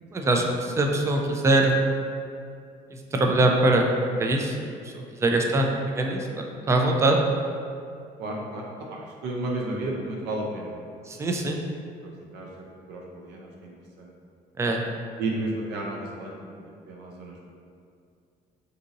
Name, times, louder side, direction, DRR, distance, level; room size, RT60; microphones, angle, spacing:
voice 1, 0.1-1.8 3.1-3.9 4.2-7.2 11.1-11.6 14.6-14.8, right 2 dB, 15° right, 1 dB, 0.3 m, -23 dB
voice 2, 8.2-10.8 12.0-14.1 15.2-17.5, right 2 dB, 80° right, -2 dB, 0.5 m, -34 dB
2.7 x 2.5 x 3.9 m, 2.3 s
cardioid pair, 110°, 17 cm